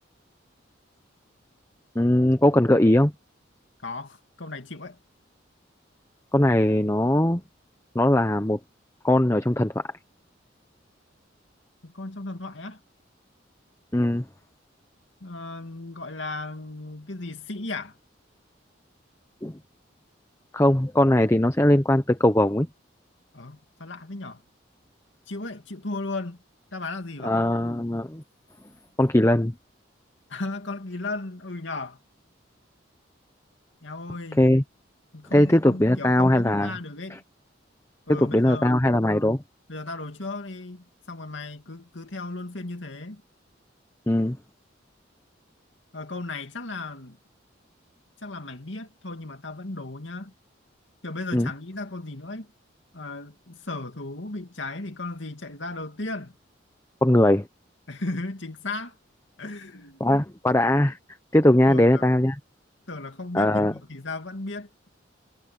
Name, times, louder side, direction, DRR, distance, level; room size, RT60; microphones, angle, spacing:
voice 1, 1.9-3.1 6.3-7.4 7.9-8.6 9.0-9.8 13.9-14.2 19.4-19.5 20.5-22.7 27.2-28.2 29.0-29.5 34.4-34.6 35.3-36.7 38.1-39.4 44.1-44.4 51.3-51.5 57.0-57.5 60.0-61.0 61.3-62.4 63.3-63.7, left 1 dB, 15° left, 0.8 m, -20 dB
voice 2, 3.8-5.0 11.8-12.8 15.2-18.0 23.3-24.4 25.3-26.4 26.7-27.5 30.3-32.0 33.8-34.5 35.1-37.2 38.1-39.1 39.7-43.2 45.9-47.2 48.2-50.3 51.0-52.5 52.9-56.3 57.9-59.0 59.4-60.0 61.7-62.1 62.9-64.9, left 2 dB, 75° left, 2.4 m, -35 dB
head